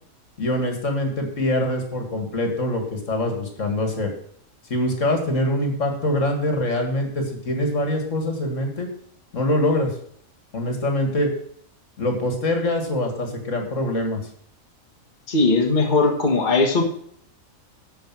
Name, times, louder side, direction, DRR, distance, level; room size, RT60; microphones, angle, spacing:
voice 1, 0.4-4.1 4.7-8.9 9.3-9.9 10.5-11.3 12.0-14.2, left 1 dB, 60° left, 4 dB, 2.4 m, -24 dB
voice 2, 15.3-16.8, left 3 dB, 35° left, 0 dB, 1.6 m, -19 dB
12.0 x 5.1 x 7.5 m, 0.64 s
omnidirectional pair, 1.5 m